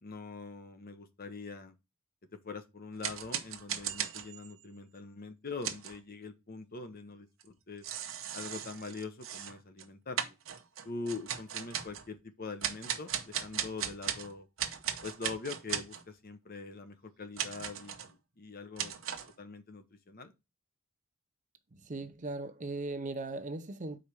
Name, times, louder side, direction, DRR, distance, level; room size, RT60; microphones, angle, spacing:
voice 1, 0.0-1.7 2.4-7.8 8.3-10.2 10.8-14.5 15.0-18.9 19.4-20.3, left 4 dB, 45° left, 0.9 m, -43 dB
sound 1, 3.0-4.6 5.6-6.0 7.4-7.5 7.8-9.9 10.2-12.1 12.6-14.3 14.6-16.0 17.4-18.1 18.8-19.3, right 9 dB, 70° right, 1.0 m, -37 dB
voice 2, 21.7-24.0, right 2 dB, 35° right, 0.7 m, -38 dB
5.1 x 4.2 x 6.0 m
head